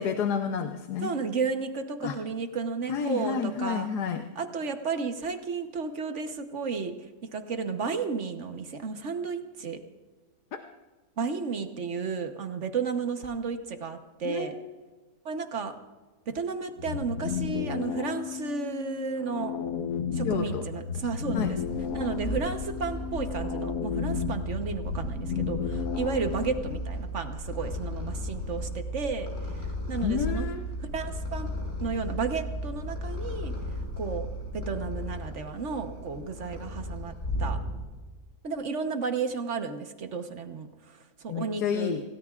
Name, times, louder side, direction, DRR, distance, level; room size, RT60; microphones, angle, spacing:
voice 1, 0.0-1.1 2.0-2.2 2.9-4.2 10.6-10.7 14.2-14.7 20.2-20.7 21.3-21.5 30.0-30.6 41.3-42.0, left 7 dB, 85° left, 6 dB, 1.4 m, -30 dB
voice 2, 1.0-3.9 4.4-9.8 11.2-14.6 15.2-15.7 16.3-19.5 20.1-21.6 21.9-30.5 30.8-31.5 31.8-33.5 34.0-34.3 34.5-37.1 37.4-37.6 38.4-41.9, right 5 dB, 50° right, 7 dB, 1.3 m, -33 dB
sound 1, 16.8-26.8, left 7 dB, 65° left, 1.4 m, -33 dB
Purr, 21.3-38.0, left 1 dB, 50° left, 6.4 m, -35 dB
27.0 x 17.0 x 2.4 m, 1.3 s
omnidirectional pair, 1.7 m